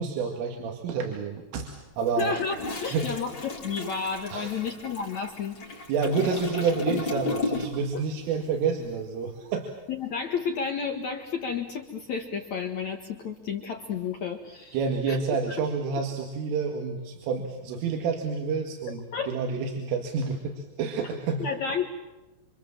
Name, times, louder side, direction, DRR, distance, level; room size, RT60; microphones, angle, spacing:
voice 1, 0.0-2.3 2.7-3.2 4.3-4.6 5.7-9.7 14.7-21.4, right 5 dB, 85° right, 2 dB, 4.7 m, -29 dB
Toilet flush, 2.0-8.0 8.2-8.5, left 3 dB, 40° left, 2.1 m, -34 dB
voice 2, 2.2-5.7 7.3-7.5 9.9-14.8 15.1-15.2 19.1-19.3 21.4-21.9, left 6 dB, 65° left, 4 dB, 1.8 m, -31 dB
29.0 x 25.0 x 7.4 m, 1.0 s
omnidirectional pair, 5.6 m